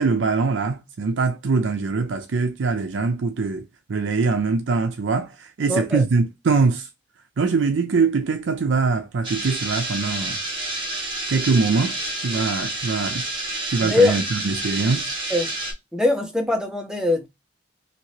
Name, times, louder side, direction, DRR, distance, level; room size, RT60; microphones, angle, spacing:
voice 1, 0.0-6.9 7.4-10.4 11.3-13.2 13.7-15.1, right 4 dB, 90° right, 0.5 m, -23 dB
voice 2, 5.7-6.0 13.8-14.1 15.3-15.5 15.9-17.3, left 2 dB, 5° right, 0.7 m, -21 dB
sound 1, 9.2-15.7, right 2 dB, 30° right, 1.3 m, -29 dB
2.8 x 2.8 x 2.9 m
head